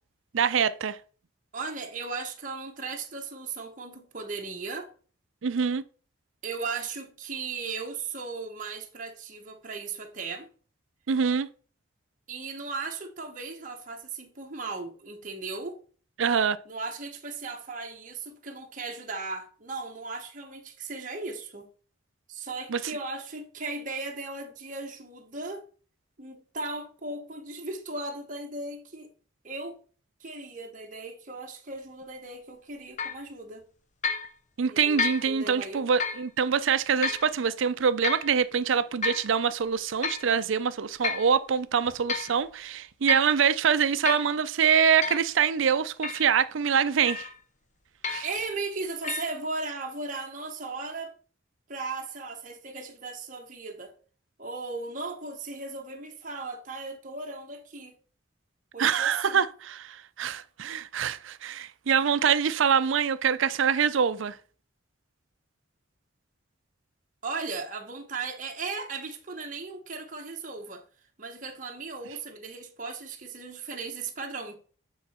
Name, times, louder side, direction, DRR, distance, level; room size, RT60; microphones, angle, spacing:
voice 1, 0.3-1.0 5.4-5.8 11.1-11.5 16.2-16.6 22.7-22.8 34.6-47.3 48.1-48.2 58.8-64.4, right 7 dB, 75° right, 0.5 m, -25 dB
voice 2, 1.5-4.9 6.4-10.5 12.3-15.8 16.6-21.7 22.3-25.7 26.2-29.1 29.4-29.8 30.2-33.6 34.7-35.9 48.2-51.1 51.7-53.9 54.4-57.9 58.7-59.4 67.2-70.8 71.2-74.6, right 3 dB, 40° right, 1.0 m, -37 dB
sound 1, 33.0-33.2 34.0-34.3 35.0-35.3 36.0-36.2 37.0-37.3 38.0-38.3 39.0-39.3 40.0-40.3 41.0-41.3 41.8-42.3 43.1-43.3 44.1-44.3 45.0-45.3 46.0-46.3 47.1-47.4 48.0-48.4 49.0-49.3, left 5 dB, 35° left, 0.7 m, -31 dB
8.2 x 4.0 x 4.2 m
head